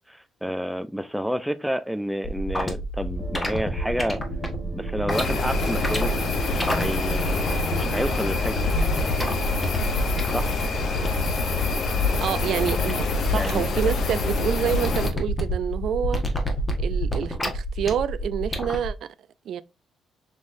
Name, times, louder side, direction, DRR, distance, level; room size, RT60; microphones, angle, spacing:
voice 1, 0.1-4.2 4.6-6.2 6.5-8.6 10.3-10.6 13.3-13.6, equal, ahead, 0.4 m, -30 dB
sound 1, 2.2-18.9, equal, 15° left, 1.2 m, -30 dB
sound 2, 3.2-9.0, right 3 dB, 50° right, 1.3 m, -37 dB
sound 3, 5.1-15.1, left 3 dB, 60° left, 0.8 m, -26 dB
voice 2, 12.1-16.2 16.8-19.1 19.5-19.6, right 9 dB, 70° right, 0.3 m, -28 dB
5.5 x 3.1 x 2.5 m
cardioid pair, 90°, 0 cm